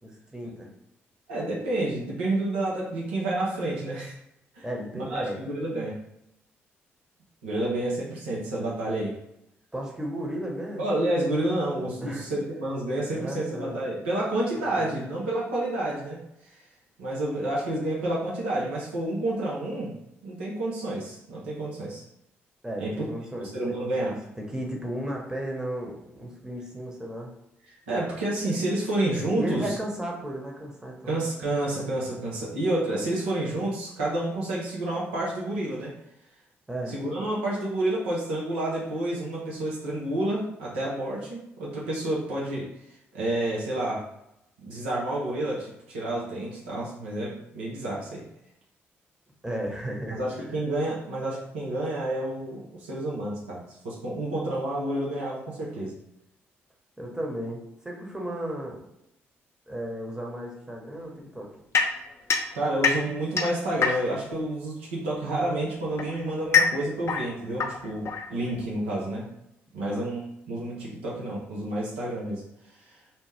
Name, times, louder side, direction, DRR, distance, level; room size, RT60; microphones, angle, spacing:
voice 1, 0.0-0.7 4.6-5.4 9.7-10.8 12.0-12.2 13.1-13.8 14.7-14.9 22.6-27.3 29.4-31.2 36.7-37.0 49.4-50.5 57.0-58.8 59.7-61.5 69.8-70.1, right 1 dB, 10° right, -1 dB, 1.0 m, -34 dB
voice 2, 1.3-4.1 4.5-4.6 4.9-5.9 7.4-9.1 10.8-16.2 17.0-19.9 20.2-22.0 22.8-22.9 23.4-24.1 27.9-29.7 31.0-35.9 36.9-42.7 43.1-44.0 44.6-48.2 50.1-55.9 62.5-69.2 69.7-70.2 70.5-72.4 72.9-73.0, right 1 dB, 85° right, -6 dB, 0.7 m, -29 dB
sound 1, 61.7-64.3 65.4-68.7, left 5 dB, 45° left, 0.5 m, -27 dB
2.7 x 2.1 x 3.4 m, 0.82 s
hypercardioid pair, 40°, 6 cm